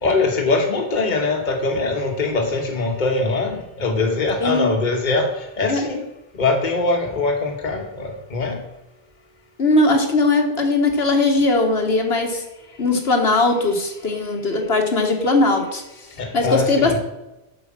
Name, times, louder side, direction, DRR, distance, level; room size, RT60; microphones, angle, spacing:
voice 1, 0.0-5.3 5.6-6.0 6.4-8.6 11.9-12.0 16.2-17.0, left 3 dB, 50° left, 3 dB, 1.4 m, -22 dB
voice 2, 4.4-4.7 5.7-5.8 9.6-12.4 12.8-15.8 16.3-17.0, left 2 dB, 75° left, 3 dB, 1.6 m, -19 dB
7.9 x 5.1 x 7.3 m, 0.96 s
omnidirectional pair, 1.0 m